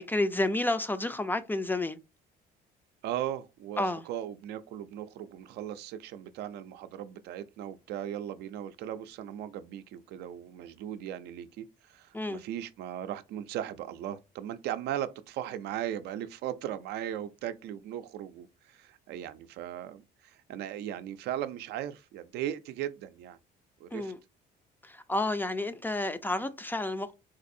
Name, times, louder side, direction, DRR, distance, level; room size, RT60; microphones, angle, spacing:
voice 1, 0.0-2.0 3.8-4.0 12.1-12.4 23.9-24.2 24.8-27.1, left 2 dB, 10° left, 0.3 m, -30 dB
voice 2, 3.0-23.4 23.8-24.1, right 11 dB, 75° right, 0.4 m, -38 dB
4.0 x 2.6 x 2.6 m
cardioid pair, 110°, 17 cm